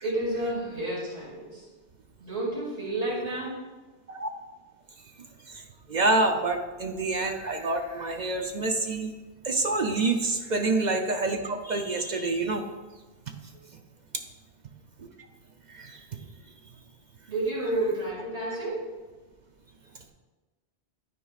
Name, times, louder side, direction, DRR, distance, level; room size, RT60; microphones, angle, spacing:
voice 1, 0.0-1.7 2.2-3.6 13.5-13.6 17.3-18.9, right 1 dB, 75° right, -7 dB, 2.9 m, -30 dB
voice 2, 5.9-9.1 9.4-12.6 15.8-15.9, right 2 dB, 50° right, 3 dB, 0.6 m, -27 dB
13.0 x 4.7 x 2.4 m, 1.2 s
omnidirectional pair, 1.2 m